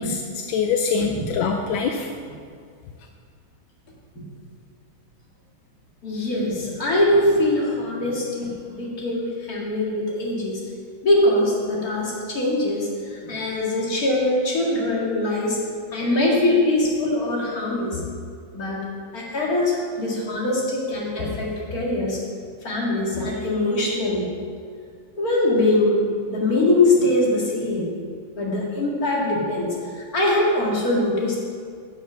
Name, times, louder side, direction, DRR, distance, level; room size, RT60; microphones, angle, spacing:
voice 1, 0.0-2.1, left 5 dB, 85° left, 3 dB, 1.4 m, -24 dB
voice 2, 6.0-10.5 11.0-15.6 15.9-18.0 18.5-18.8 19.1-22.2 22.6-24.3 25.2-25.9 26.3-27.9 28.4-31.4, left 1 dB, 50° left, -4 dB, 2.5 m, -22 dB
9.1 x 7.0 x 6.2 m, 2.2 s
omnidirectional pair, 2.1 m